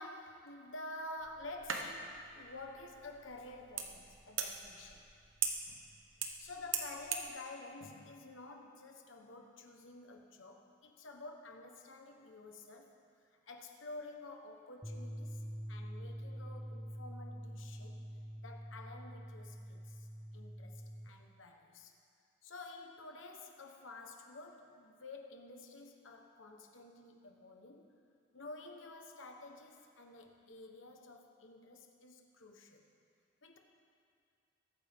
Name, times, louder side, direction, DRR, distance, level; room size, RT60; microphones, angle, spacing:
voice 1, 0.0-5.1 5.7-5.9 6.2-13.0 13.5-18.0 18.4-20.1 20.3-22.0 22.4-27.9 28.3-32.8 33.4-33.6, left 2 dB, 90° left, 3 dB, 1.2 m, -50 dB
sound 1, 1.2-7.3, right 6 dB, 85° right, 1.1 m, -42 dB
sound 2, 14.8-21.1, equal, 5° left, 1.1 m, -46 dB
21.0 x 9.0 x 3.7 m, 2.4 s
head